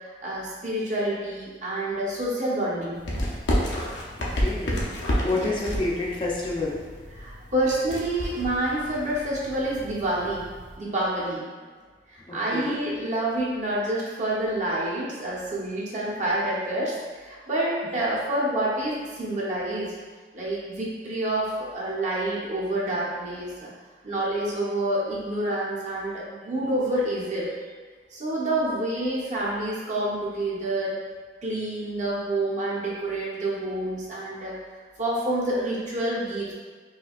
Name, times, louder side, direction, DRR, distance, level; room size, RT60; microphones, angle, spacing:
voice 1, 0.2-3.0 5.3-5.5 7.1-10.4 10.8-11.4 12.1-19.9 20.3-23.7 24.0-27.5 28.1-31.0 31.4-34.6 35.0-36.5, right 1 dB, 45° right, -6 dB, 0.9 m, -28 dB
sound 1, 2.9-10.8, equal, 85° left, 0.7 m, -31 dB
voice 2, 4.2-4.8 5.2-6.8 12.3-12.8, left 2 dB, 30° left, -4 dB, 0.5 m, -28 dB
4.7 x 2.8 x 2.4 m, 1.5 s
head